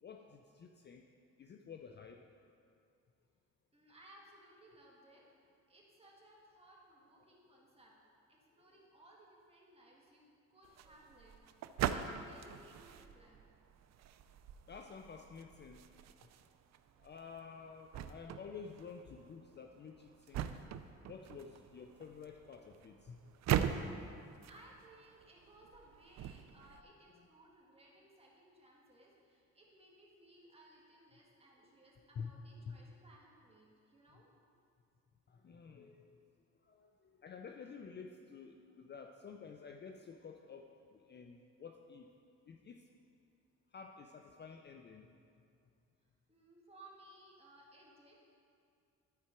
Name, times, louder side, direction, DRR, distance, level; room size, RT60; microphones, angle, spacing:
voice 1, 0.0-1.1 1.4-2.3 7.2-7.6 8.7-8.8 14.7-15.9 17.0-20.5 21.1-23.3 27.2-27.3 32.2-32.4 32.7-32.8 35.3-36.3 36.6-42.1 42.5-42.9 43.7-45.1, left 6 dB, 35° left, 4 dB, 0.5 m, -51 dB
voice 2, 3.7-5.3 5.7-7.9 8.3-11.4 11.9-13.4 24.5-34.3 46.3-48.2, right 1 dB, 20° right, -3 dB, 1.8 m, -61 dB
sound 1, 10.6-26.8, right 9 dB, 65° right, 0.5 m, -42 dB
12.0 x 4.8 x 4.4 m, 2.4 s
cardioid pair, 90°, 30 cm